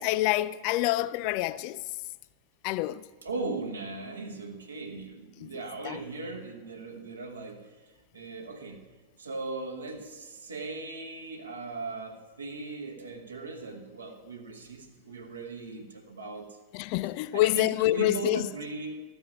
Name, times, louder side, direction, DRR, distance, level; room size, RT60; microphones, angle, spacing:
voice 1, 0.0-1.8 2.6-3.0 5.4-5.5 5.8-6.0 16.7-18.5, left 16 dB, 45° left, 0.3 m, -27 dB
voice 2, 3.2-7.7 8.1-8.8 9.2-16.6 17.3-19.0, right 3 dB, 75° right, 1.2 m, -38 dB
13.0 x 5.5 x 8.6 m
figure-of-eight pair, 90°, 0 cm